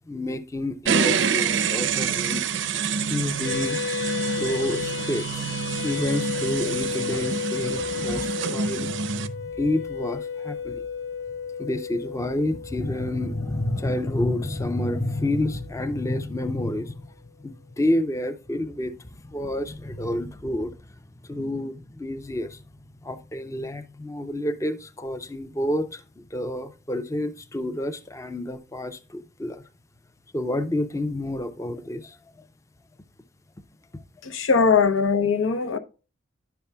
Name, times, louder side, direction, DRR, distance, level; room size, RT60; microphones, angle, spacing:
voice 1, 0.1-2.4 3.1-3.8 4.3-5.4 5.8-10.8 11.6-17.1 17.4-20.8 21.2-22.6 23.0-29.6 30.3-32.2 33.9-34.0, left 1 dB, 15° left, 0.5 m, -29 dB
sound 1, 0.9-9.3, right 6 dB, 65° right, 0.5 m, -27 dB
sound 2, 3.4-16.1, left 7 dB, 60° left, 0.9 m, -33 dB
voice 2, 34.2-35.8, left 5 dB, 90° left, 0.8 m, -20 dB
10.0 x 6.9 x 2.2 m
head